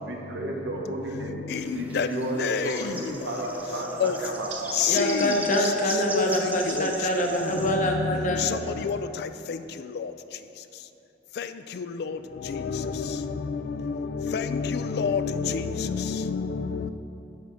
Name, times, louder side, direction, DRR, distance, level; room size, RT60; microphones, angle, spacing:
voice 1, 0.0-1.4 1.7-4.9 6.2-6.5, right 1 dB, 80° right, 0 dB, 1.1 m, -32 dB
sound 1, 1.5-7.7, right 2 dB, 10° right, 0.6 m, -38 dB
voice 2, 2.4-2.8 4.0-4.1 4.8-5.3 6.1-6.5 6.8-6.9 8.4-8.6 8.8-9.0 9.5-9.6 12.5-13.1 13.5-13.6 14.2-16.9, left 6 dB, 60° left, 11 dB, 0.3 m, -27 dB
voice 3, 4.9-8.4, left 1 dB, 45° left, 1 dB, 0.9 m, -25 dB
10.0 x 3.5 x 6.2 m, 2.8 s
head